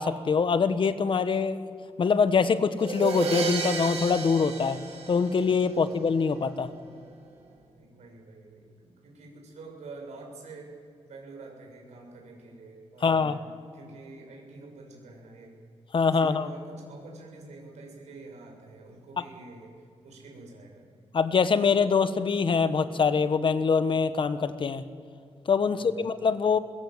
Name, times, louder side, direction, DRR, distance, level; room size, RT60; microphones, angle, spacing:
voice 1, 0.0-1.6 2.0-4.8 5.1-6.7 13.0-13.4 15.9-16.5 21.1-24.8 25.5-26.6, left 5 dB, 50° left, 12 dB, 1.2 m, -24 dB
sound 1, 2.8-5.7, right 4 dB, 65° right, 3.8 m, -32 dB
voice 2, 7.7-10.8 11.0-13.4 13.7-15.5 16.1-19.7 20.0-20.8 25.7-26.1, right 3 dB, 85° right, 0 dB, 7.4 m, -47 dB
22.5 x 22.0 x 8.0 m, 2.4 s
wide cardioid pair, 120°, 11 cm